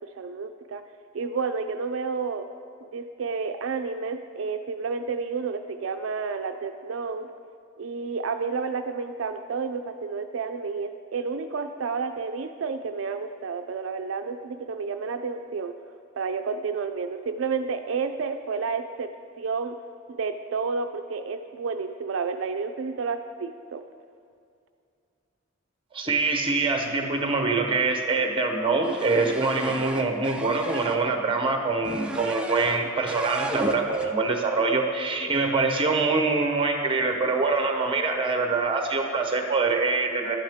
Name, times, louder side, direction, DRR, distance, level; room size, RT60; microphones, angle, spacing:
voice 1, 0.1-0.8 1.1-2.5 2.8-7.3 7.8-15.7 16.1-19.1 19.4-19.8 20.1-23.8, right 5 dB, 80° right, 7 dB, 0.4 m, -30 dB
voice 2, 25.9-40.4, right 3 dB, 25° right, 4 dB, 1.0 m, -24 dB
sound 1, 28.8-31.0 31.8-32.8 33.1-34.1, right 1 dB, 5° right, 0.5 m, -34 dB
11.0 x 9.0 x 3.6 m, 2.3 s
head